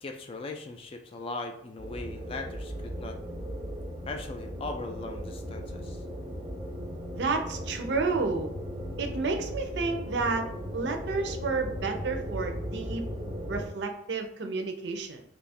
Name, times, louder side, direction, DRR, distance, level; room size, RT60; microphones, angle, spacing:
voice 1, 0.0-3.2 4.1-6.0, left 3 dB, 30° left, 4 dB, 0.3 m, -39 dB
sound 1, 1.8-13.7, equal, 15° right, 0.6 m, -37 dB
voice 2, 7.1-8.5 9.0-10.5 10.7-13.0 13.5-15.2, right 4 dB, 65° right, 5 dB, 0.5 m, -30 dB
2.8 x 2.3 x 4.1 m, 0.71 s
head